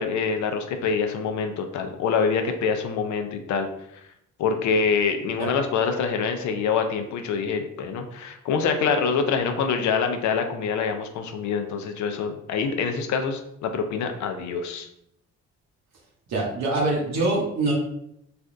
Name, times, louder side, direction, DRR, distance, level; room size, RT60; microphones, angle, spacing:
voice 1, 0.0-3.7 4.4-14.9, left 5 dB, 70° left, 6 dB, 0.5 m, -25 dB
voice 2, 16.3-17.7, right 2 dB, 60° right, -2 dB, 0.8 m, -24 dB
3.3 x 2.3 x 2.5 m, 0.77 s
cardioid pair, 90°, 30 cm